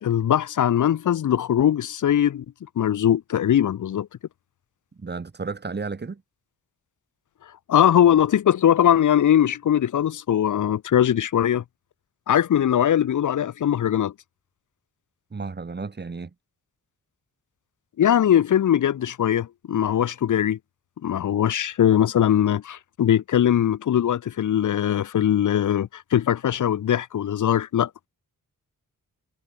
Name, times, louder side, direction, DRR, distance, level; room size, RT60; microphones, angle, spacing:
voice 1, 0.0-2.4 2.8-4.1 7.7-11.6 12.3-14.1 18.0-20.6 21.0-27.9, left 10 dB, 60° left, 0.8 m, -21 dB
voice 2, 4.9-6.2 15.3-16.3, right 4 dB, 30° right, 3.6 m, -33 dB
wide cardioid pair, 150°, 34 cm